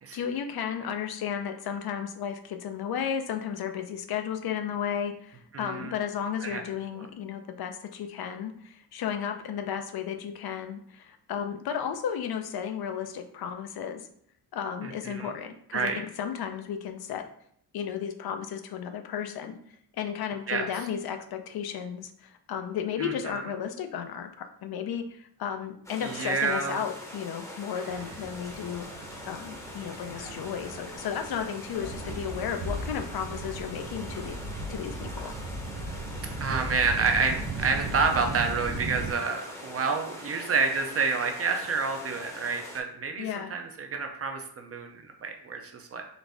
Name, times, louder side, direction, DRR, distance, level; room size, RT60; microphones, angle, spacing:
voice 1, 0.1-14.1 14.5-17.2 17.7-19.6 20.0-28.9 29.2-34.4 34.7-35.3 43.2-43.5, left 8 dB, 70° left, 7 dB, 0.5 m, -34 dB
voice 2, 5.5-5.9 6.4-6.6 14.8-15.3 15.7-16.0 20.5-20.7 23.0-23.4 26.0-26.8 30.2-30.5 36.4-46.0, right 4 dB, 40° right, 4 dB, 0.5 m, -29 dB
sound 1, 25.8-42.8, left 1 dB, 10° left, 0.7 m, -43 dB
sound 2, 27.8-39.1, right 2 dB, 85° right, 0.8 m, -37 dB
3.9 x 2.5 x 3.4 m, 0.65 s
wide cardioid pair, 130°, 39 cm